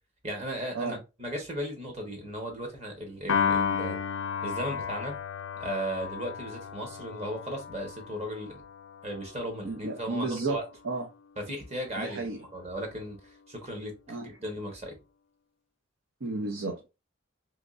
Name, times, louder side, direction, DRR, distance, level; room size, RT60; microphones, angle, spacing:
voice 1, 0.2-4.0 4.4-5.1 5.6-8.6 9.0-10.6 11.4-14.9, right 1 dB, 35° right, 1.2 m, -36 dB
Piano, 3.3-9.7, left 6 dB, 85° left, 0.5 m, -33 dB
voice 2, 9.6-10.6 10.8-11.0 12.0-12.4 14.1-14.3 16.2-16.9, right 3 dB, 90° right, 0.7 m, -32 dB
3.5 x 3.1 x 2.5 m
head